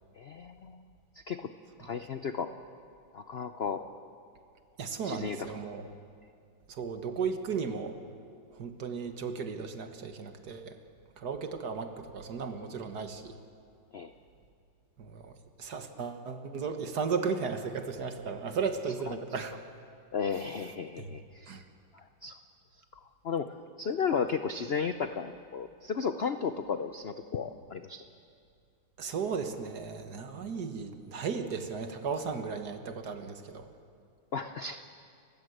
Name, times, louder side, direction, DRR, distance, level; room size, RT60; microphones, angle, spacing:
voice 1, 0.2-0.8 1.3-1.5 1.8-2.5 3.1-3.8 5.0-5.5 13.9-14.1 19.1-19.2 20.1-21.6 21.9-22.4 23.2-28.0 34.3-34.8, left 6 dB, 75° left, 9 dB, 0.5 m, -34 dB
voice 2, 4.8-5.9 6.7-8.0 8.6-10.8 11.2-13.3 15.0-15.3 15.6-19.5 21.0-21.1 21.5-21.6 29.0-33.7, right 5 dB, 60° right, 7 dB, 1.9 m, -35 dB
30.0 x 15.0 x 7.9 m, 2.4 s
omnidirectional pair, 2.0 m